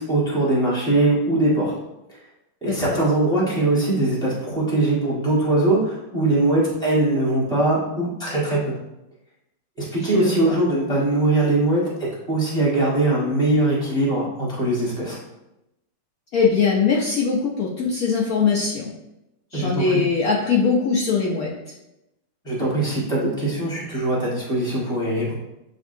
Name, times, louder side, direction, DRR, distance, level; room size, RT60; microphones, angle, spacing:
voice 1, 0.0-1.7 2.1-2.2 2.6-8.8 9.8-11.8 12.3-15.2 19.5-20.0 22.4-25.3, right 2 dB, 5° left, -6 dB, 1.0 m, -21 dB
voice 2, 2.7-3.1 10.0-10.6 16.3-18.9 19.5-21.5, left 5 dB, 80° left, -2 dB, 0.8 m, -21 dB
7.6 x 2.6 x 2.6 m, 0.90 s
omnidirectional pair, 2.2 m